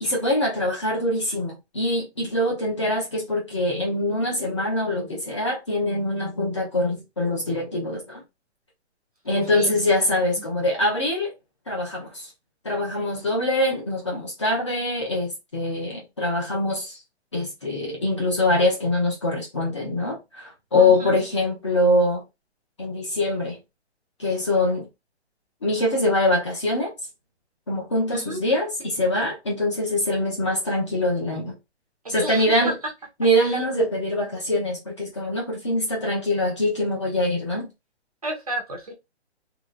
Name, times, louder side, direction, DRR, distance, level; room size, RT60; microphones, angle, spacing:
voice 1, 0.0-8.2 9.2-11.3 11.7-12.3 12.6-17.0 17.3-22.2 22.8-23.6 24.2-24.9 25.6-26.9 27.7-31.5 32.1-32.7 33.2-37.7, left 1 dB, 25° left, 0.9 m, -24 dB
voice 2, 20.7-21.1 28.1-28.4 32.2-32.7 33.4-33.6 38.2-38.9, right 2 dB, 35° right, 0.7 m, -31 dB
2.9 x 2.9 x 2.5 m
hypercardioid pair, 180°, 34 cm